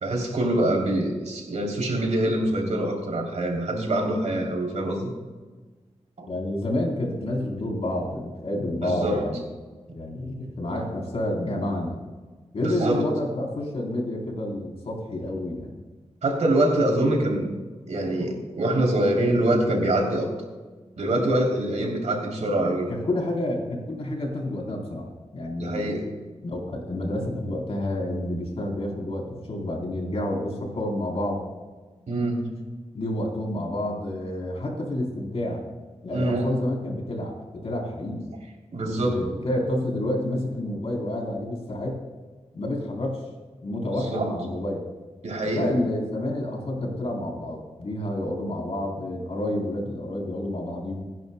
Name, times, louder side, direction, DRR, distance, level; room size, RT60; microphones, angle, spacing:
voice 1, 0.0-5.1 6.2-6.3 8.8-9.2 12.6-13.1 16.2-17.5 17.9-20.3 21.0-22.9 25.6-26.1 32.1-32.4 36.1-36.5 38.7-39.2 44.0-44.2 45.2-45.7, right 1 dB, 80° right, 0 dB, 3.1 m, -24 dB
voice 2, 6.3-9.5 9.9-12.0 12.5-15.7 22.6-25.9 26.4-31.4 32.9-35.6 36.0-38.3 38.8-42.0 42.5-43.2 43.6-44.8 45.5-51.0, left 1 dB, 60° left, -1 dB, 3.5 m, -29 dB
27.0 x 11.0 x 2.2 m, 1.3 s
wide cardioid pair, 140°, 12 cm